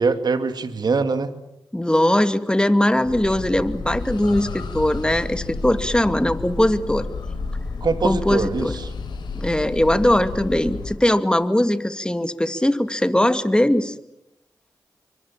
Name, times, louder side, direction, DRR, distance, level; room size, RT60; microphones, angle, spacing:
voice 1, 0.0-1.3 7.8-8.9, right 4 dB, 65° right, 9 dB, 2.4 m, -23 dB
voice 2, 1.7-7.1 8.0-8.8 9.3-13.9, left 1 dB, 10° left, 9 dB, 2.4 m, -20 dB
sound 1, 3.0-11.0, left 4 dB, 85° left, 4.3 m, -31 dB
27.0 x 24.5 x 7.5 m, 0.84 s
cardioid pair, 40°, 8 cm